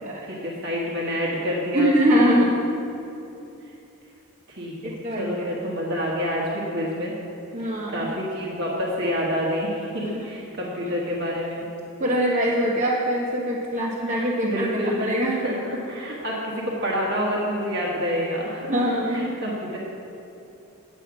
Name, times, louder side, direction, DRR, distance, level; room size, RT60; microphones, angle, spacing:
voice 1, 0.3-2.2 4.6-7.1 7.6-11.6 14.1-18.7 19.1-19.8, equal, 50° right, -3 dB, 1.4 m, -28 dB
voice 2, 1.7-2.6 4.8-5.5 7.5-8.1 12.0-15.4 18.7-19.4, equal, 35° right, -4 dB, 0.8 m, -23 dB
8.9 x 7.3 x 5.8 m, 2.9 s
head